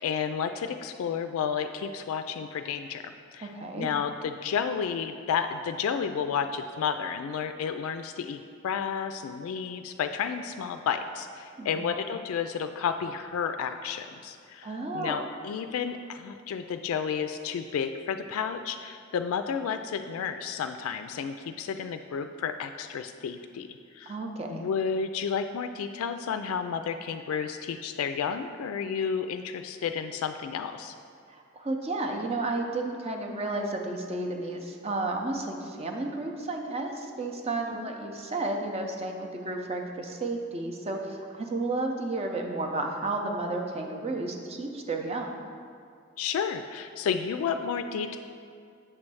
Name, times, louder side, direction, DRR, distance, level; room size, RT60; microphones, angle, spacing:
voice 1, 0.0-23.7 23.9-24.2 24.5-30.9 37.7-37.9 46.2-48.2, left 6 dB, 80° left, 8 dB, 0.3 m, -31 dB
voice 2, 3.4-3.9 11.6-11.9 14.6-15.2 24.1-24.6 31.3-45.3, right 2 dB, 30° right, 2 dB, 0.6 m, -32 dB
7.6 x 3.2 x 6.1 m, 2.3 s
head